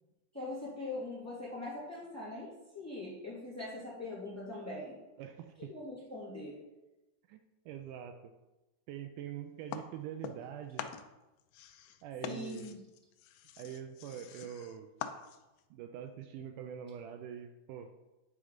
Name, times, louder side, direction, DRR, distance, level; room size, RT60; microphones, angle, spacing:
voice 1, 0.3-5.0 5.7-6.6 12.2-12.7, left 2 dB, 5° left, -7 dB, 1.9 m, -42 dB
voice 2, 5.2-5.7 7.3-7.4 7.7-8.3 8.9-10.9 12.0-12.7 13.6-14.9 15.7-17.9, right 9 dB, 80° right, 6 dB, 2.0 m, -44 dB
sound 1, 9.7-10.5 10.8-15.6, left 9 dB, 85° left, 2.3 m, -45 dB
9.8 x 3.7 x 5.1 m, 1.0 s
omnidirectional pair, 3.8 m